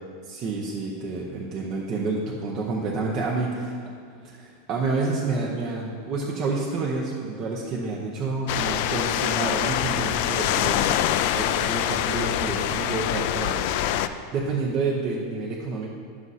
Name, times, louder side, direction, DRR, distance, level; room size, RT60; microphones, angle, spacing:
voice 1, 0.2-3.9 4.2-10.9 11.3-13.6 13.9-15.9, right 3 dB, 30° right, -3 dB, 0.8 m, -29 dB
sound 1, 8.5-14.1, left 11 dB, 50° left, 0.3 m, -25 dB
11.0 x 6.1 x 4.1 m, 2.3 s
supercardioid pair, 175°, 0 cm